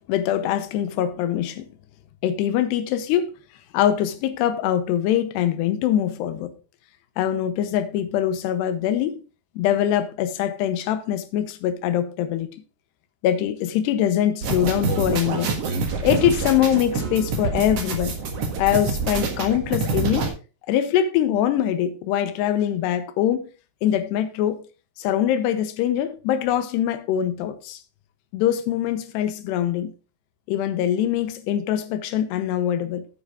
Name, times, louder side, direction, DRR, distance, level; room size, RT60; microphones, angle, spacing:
voice 1, 0.1-1.7 2.2-3.3 3.7-6.5 7.2-9.2 9.6-12.5 13.2-15.6 16.0-18.2 18.6-20.3 20.7-23.5 23.8-24.6 25.0-27.8 28.3-29.9 30.5-33.1, left 10 dB, 80° left, 2.9 m, -23 dB
sound 1, 14.4-20.3, right 4 dB, 55° right, 1.9 m, -26 dB
9.2 x 8.7 x 3.6 m
omnidirectional pair, 5.0 m